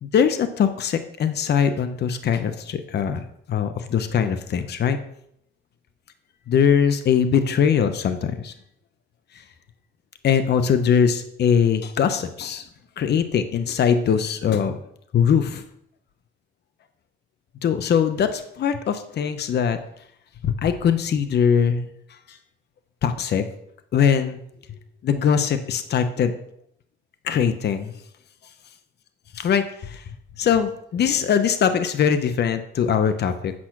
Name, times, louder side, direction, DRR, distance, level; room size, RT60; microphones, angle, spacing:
voice 1, 0.0-3.2 3.5-5.0 6.5-8.5 10.2-12.6 13.0-14.8 15.1-15.6 17.6-19.8 20.4-21.9 22.3-22.4 23.0-23.4 23.9-24.4 25.0-26.3 27.2-27.9 29.3-30.0 30.4-33.5, left 7 dB, 55° left, 9 dB, 0.8 m, -21 dB
8.7 x 5.7 x 6.0 m, 0.73 s
cardioid pair, 90°, 20 cm